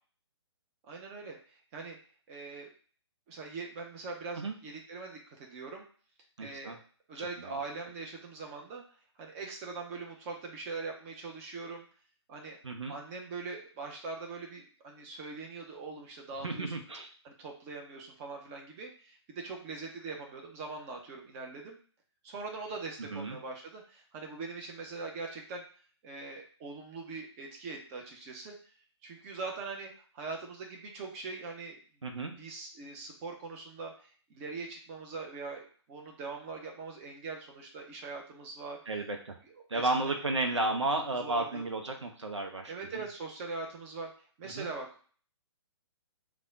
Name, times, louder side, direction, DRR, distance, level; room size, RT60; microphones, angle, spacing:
voice 1, 0.9-2.0 2.3-2.7 3.3-5.9 6.4-6.8 7.1-8.8 9.2-11.8 12.3-12.6 12.9-16.8 17.2-21.8 22.2-25.6 26.0-28.5 29.0-31.8 32.4-38.8 39.4-39.9 40.5-41.6 42.7-44.1 44.4-45.1, right 3 dB, 30° right, 1 dB, 0.9 m, -42 dB
voice 2, 6.4-6.8 12.6-12.9 16.4-17.1 23.1-23.4 32.0-32.3 38.9-39.4 39.7-42.7 44.5-44.7, right 2 dB, 80° right, 4 dB, 0.7 m, -32 dB
3.5 x 2.3 x 3.8 m, 0.43 s
figure-of-eight pair, 130°, 15 cm